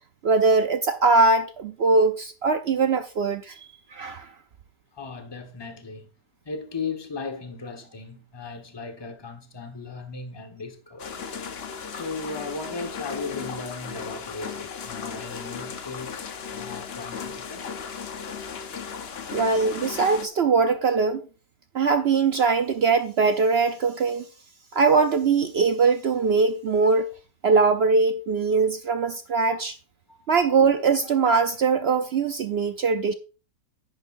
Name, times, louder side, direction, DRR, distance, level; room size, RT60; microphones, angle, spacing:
voice 1, 0.2-4.3 19.3-21.2 21.7-24.3 24.7-27.1 27.4-29.8 30.3-33.1, right 4 dB, 70° right, 0.6 m, -21 dB
voice 2, 4.9-6.1 6.4-11.1 12.0-17.7 30.1-30.2, left 4 dB, 15° left, 1.1 m, -37 dB
sound 1, 11.0-20.3, left 6 dB, 50° left, 0.8 m, -36 dB
10.5 x 9.2 x 2.6 m
omnidirectional pair, 1.8 m